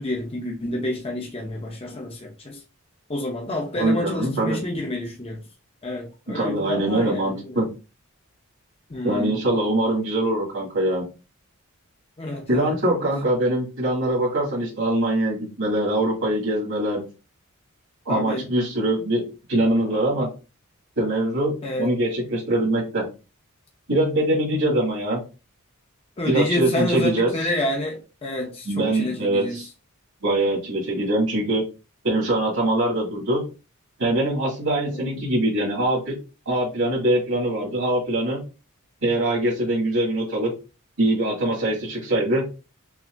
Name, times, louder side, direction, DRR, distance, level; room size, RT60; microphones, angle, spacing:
voice 1, 0.0-2.6 3.1-5.4 5.8-7.6 8.9-9.4 12.2-13.0 18.1-18.5 21.6-22.0 26.2-29.6 34.9-35.3, left 1 dB, 25° left, 0.7 m, -29 dB
voice 2, 3.8-4.6 6.3-7.7 9.0-11.0 12.5-17.0 18.1-19.2 19.5-20.3 21.0-23.1 23.9-25.2 26.3-27.3 28.7-29.7 30.2-31.6 32.0-33.4 34.0-36.1 36.5-38.4 39.0-40.5 41.0-42.4, right 1 dB, 75° right, 2.2 m, -23 dB
5.9 x 2.7 x 2.5 m
head